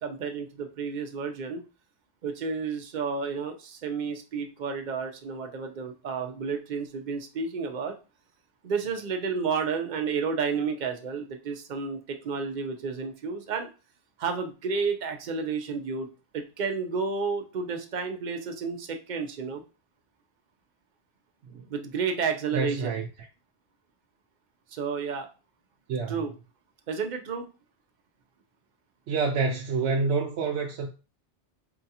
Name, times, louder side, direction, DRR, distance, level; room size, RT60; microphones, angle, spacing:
voice 1, 0.0-1.6 2.2-7.9 8.6-13.7 14.2-16.1 16.3-19.6 21.7-23.0 24.7-25.3 26.1-26.3 26.9-27.5, right 5 dB, 50° right, 0.6 m, -31 dB
voice 2, 22.5-23.1 25.9-26.1 29.1-30.9, right 4 dB, 75° right, 0.9 m, -27 dB
4.6 x 2.4 x 2.8 m
omnidirectional pair, 1.2 m